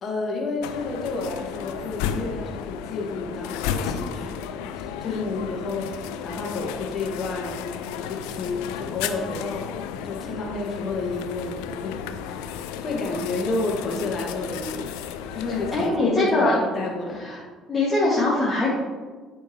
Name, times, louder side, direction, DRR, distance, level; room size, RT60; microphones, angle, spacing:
voice 1, 0.0-9.7 10.0-12.0 12.3-14.9 15.3-17.2, left 3 dB, 40° left, -1 dB, 1.7 m, -30 dB
sound 1, 0.6-15.9, left 8 dB, 65° left, 0.4 m, -33 dB
voice 2, 15.7-16.5 17.2-17.4 17.7-18.7, left 2 dB, 15° left, -8 dB, 2.0 m, -22 dB
11.5 x 4.6 x 3.0 m, 1.4 s
figure-of-eight pair, 50°, 0 cm